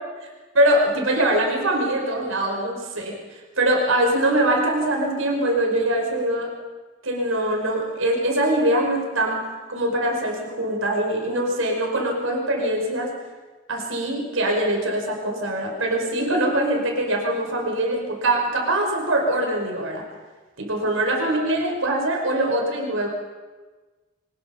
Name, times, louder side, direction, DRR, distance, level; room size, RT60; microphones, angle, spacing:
voice 1, 0.5-6.5 7.0-9.4 9.7-13.1 13.7-20.0 20.6-23.1, right 1 dB, 80° right, 0 dB, 5.2 m, -23 dB
23.0 x 20.5 x 5.7 m, 1.3 s
head